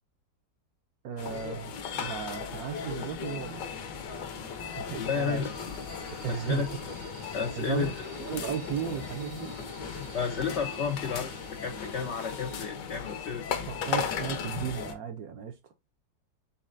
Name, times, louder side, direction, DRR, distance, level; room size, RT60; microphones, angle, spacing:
voice 1, 1.0-3.7 4.8-5.5 6.2-6.7 7.6-9.6 13.7-15.6, right 8 dB, 70° right, 0.9 m, -35 dB
sound 1, 1.2-14.9, left 7 dB, 75° left, 1.3 m, -37 dB
sound 2, 2.7-12.7, right 5 dB, 90° right, 1.5 m, -50 dB
voice 2, 5.0-5.5 6.3-6.7 7.3-7.9 10.1-11.3 11.6-13.5, left 6 dB, 90° left, 0.6 m, -31 dB
4.2 x 3.9 x 2.5 m
omnidirectional pair, 2.0 m